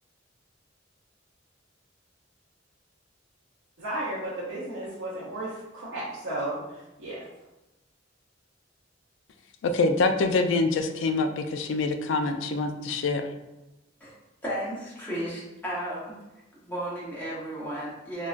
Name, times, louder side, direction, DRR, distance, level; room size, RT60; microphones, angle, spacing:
voice 1, 3.8-6.6 7.0-7.2, right 1 dB, 70° right, -7 dB, 0.6 m, -33 dB
voice 2, 9.6-13.3, left 3 dB, 75° left, 6 dB, 0.3 m, -25 dB
voice 3, 14.4-16.1 16.5-18.3, right 1 dB, 10° left, -7 dB, 0.8 m, -34 dB
3.6 x 2.2 x 2.3 m, 0.99 s
head